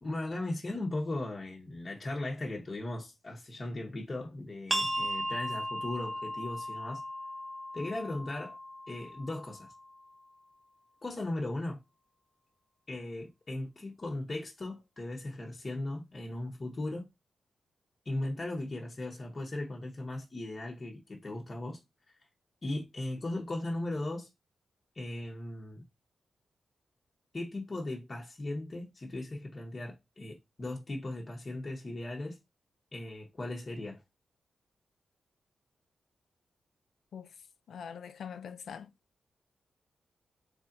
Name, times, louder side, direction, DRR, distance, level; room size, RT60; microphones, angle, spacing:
voice 1, 0.0-7.0 7.7-8.6 8.9-9.7 11.0-11.8 12.9-17.1 18.0-21.8 22.1-22.2 22.6-24.3 24.9-25.8 27.3-32.4 32.9-34.0, left 2 dB, 35° left, 0.9 m, -37 dB
sound 1, 4.7-10.1, equal, 10° right, 0.8 m, -37 dB
voice 2, 37.1-38.9, left 7 dB, 80° left, 0.3 m, -44 dB
4.0 x 3.3 x 2.5 m
cardioid pair, 90°, 0 cm